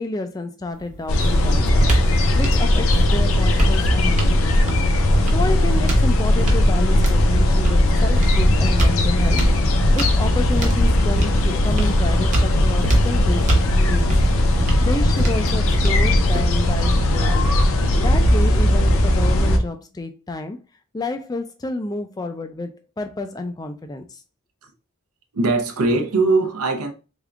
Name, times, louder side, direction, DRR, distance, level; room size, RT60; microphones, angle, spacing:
voice 1, 0.0-4.8 5.3-9.4 9.9-13.4 13.9-14.1 14.8-17.6 18.0-20.6 20.9-22.7 23.0-24.2, left 2 dB, 15° left, 0.3 m, -30 dB
sound 1, 0.7-16.8, right 1 dB, 35° right, 0.9 m, -26 dB
sound 2, 1.1-19.6, left 1 dB, 65° left, 0.6 m, -18 dB
voice 2, 25.3-26.9, right 3 dB, 85° right, 0.7 m, -20 dB
3.6 x 3.5 x 2.3 m
head